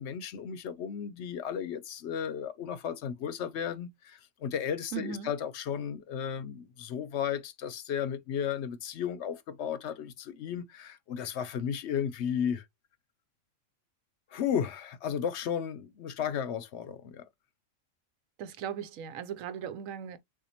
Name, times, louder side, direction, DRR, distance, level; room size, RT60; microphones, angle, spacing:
voice 1, 0.0-12.6 14.3-17.2, left 8 dB, 65° left, 0.8 m, -34 dB
voice 2, 4.9-5.3 18.4-20.2, right 8 dB, 85° right, 1.0 m, -38 dB
6.9 x 2.5 x 2.8 m
omnidirectional pair, 1.3 m